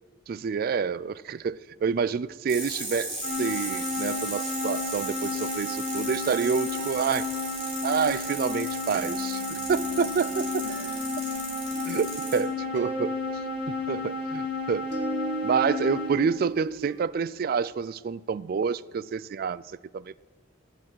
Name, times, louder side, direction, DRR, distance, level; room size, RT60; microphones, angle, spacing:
voice 1, 0.3-7.3 7.8-10.7 11.9-13.1 13.7-14.9 15.4-19.6 19.9-20.2, right 6 dB, 50° right, 0.3 m, -28 dB
sound 1, 2.5-12.4, right 2 dB, 30° right, 4.5 m, -36 dB
sound 2, 3.2-16.1, left 3 dB, 85° left, 2.4 m, -32 dB
sound 3, 6.6-17.1, right 4 dB, 70° right, 1.3 m, -40 dB
12.5 x 8.9 x 7.9 m
head